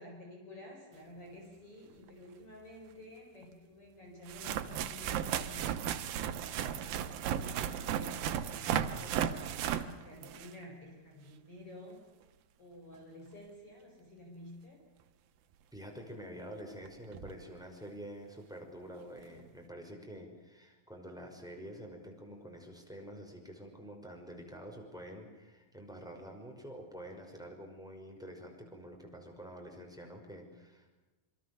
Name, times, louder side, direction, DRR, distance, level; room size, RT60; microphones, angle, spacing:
voice 1, 0.0-5.8 6.6-7.0 7.3-12.0 12.6-14.8, left 1 dB, 35° left, 1 dB, 5.7 m, -51 dB
sound 1, 2.1-2.2 3.4-3.5 4.3-10.6 15.8-15.9 16.8-16.9 17.1-17.3 19.2-19.3, right 9 dB, 75° right, 2.9 m, -35 dB
voice 2, 15.7-30.9, equal, ahead, 3 dB, 5.1 m, -48 dB
27.0 x 25.0 x 6.8 m, 1.2 s
omnidirectional pair, 4.2 m